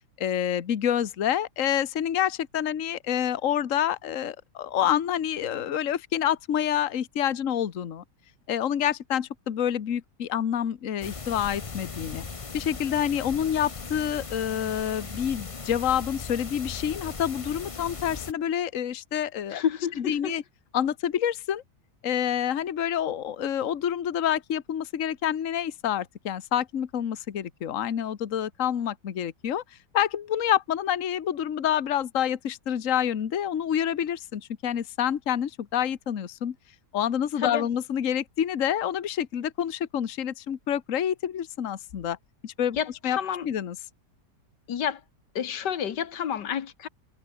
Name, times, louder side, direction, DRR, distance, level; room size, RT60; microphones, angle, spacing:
voice 1, 0.2-8.0 8.5-12.2 12.5-19.6 20.0-20.4 20.7-21.6 22.0-29.6 29.9-36.5 36.9-42.2 42.4-42.8 43.0-43.2 43.4-43.8, left 10 dB, 50° left, 1.5 m, -27 dB
sound 1, 11.0-18.3, left 4 dB, 30° left, 0.7 m, -38 dB
voice 2, 19.5-20.3 37.4-37.6 42.8-43.5 44.7-45.0 45.4-46.9, left 8 dB, 85° left, 1.9 m, -29 dB
omnidirectional pair, 1.8 m